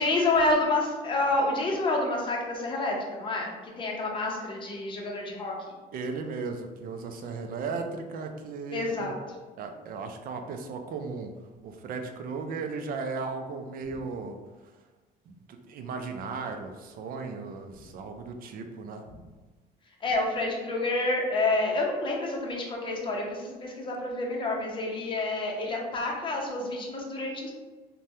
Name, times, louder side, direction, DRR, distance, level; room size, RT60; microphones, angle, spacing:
voice 1, 0.0-5.7 8.7-9.2 20.0-27.5, left 2 dB, 30° left, -1 dB, 0.6 m, -28 dB
voice 2, 5.9-9.1 9.6-11.3 11.6-14.4 15.3-19.0, right 4 dB, 60° right, 5 dB, 0.4 m, -36 dB
3.3 x 2.1 x 2.7 m, 1.3 s
cardioid pair, 110°, 17 cm